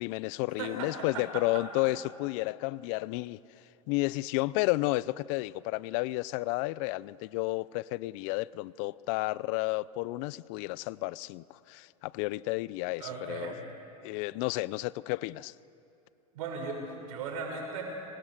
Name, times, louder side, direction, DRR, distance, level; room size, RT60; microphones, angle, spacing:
voice 1, 0.0-3.4 3.9-13.5 14.0-15.5, left 20 dB, 55° left, 21 dB, 0.6 m, -32 dB
voice 2, 0.6-1.6 13.0-13.6 16.3-17.8, right 4 dB, 70° right, 1 dB, 6.7 m, -37 dB
25.5 x 25.5 x 6.6 m, 2.8 s
hypercardioid pair, 100°, 19 cm